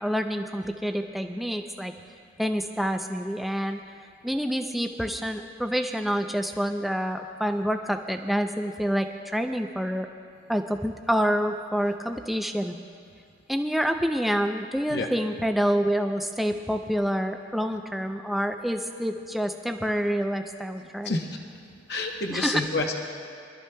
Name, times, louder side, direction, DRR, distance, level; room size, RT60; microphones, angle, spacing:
voice 1, 0.0-1.9 2.4-3.8 4.2-10.1 10.5-12.8 13.5-21.2 22.3-22.6, equal, ahead, 5 dB, 0.4 m, -27 dB
voice 2, 20.8-21.4 21.7-22.9, left 3 dB, 55° left, 2 dB, 0.8 m, -29 dB
24.5 x 13.0 x 2.2 m, 2.4 s
head